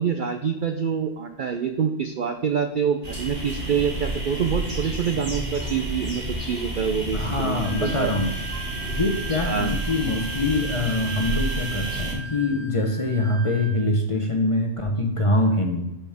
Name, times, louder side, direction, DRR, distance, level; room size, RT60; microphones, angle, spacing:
voice 1, 0.0-8.1 9.4-9.7, right 7 dB, 65° right, 6 dB, 0.5 m, -26 dB
sound 1, 3.0-12.1, right 1 dB, 30° right, 2.0 m, -30 dB
voice 2, 7.1-8.3 8.9-15.9, left 2 dB, 30° left, 2 dB, 0.6 m, -24 dB
Wind instrument woodwind instrument, 7.6-13.9, right 7 dB, 90° right, 2.0 m, -38 dB
12.0 x 4.3 x 3.4 m, 0.96 s
omnidirectional pair, 1.4 m